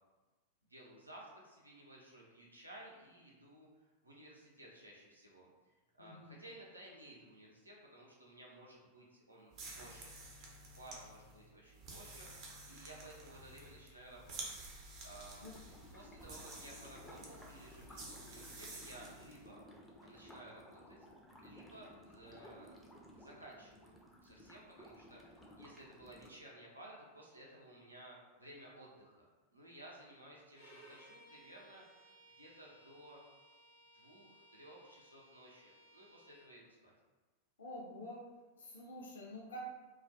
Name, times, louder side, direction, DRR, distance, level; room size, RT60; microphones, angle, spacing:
voice 1, 0.7-10.1 10.7-14.4 15.0-15.5 15.9-19.6 20.0-21.1 21.4-22.7 23.1-23.9 24.2-29.2 29.5-32.1 32.4-33.2 33.9-36.9, right 1 dB, 85° right, -4 dB, 0.6 m, -56 dB
voice 2, 6.0-6.4 15.4-15.5 37.6-38.2 38.6-39.7, equal, 65° left, -3 dB, 0.5 m, -47 dB
sound 1, 9.5-19.4, right 2 dB, 40° right, 0.5 m, -51 dB
sound 2, 15.4-26.3, equal, 10° left, 0.4 m, -57 dB
Bowed string instrument, 30.5-36.5, right 1 dB, 85° left, 1.0 m, -62 dB
2.3 x 2.2 x 2.6 m, 1.2 s
figure-of-eight pair, 90°, 0 cm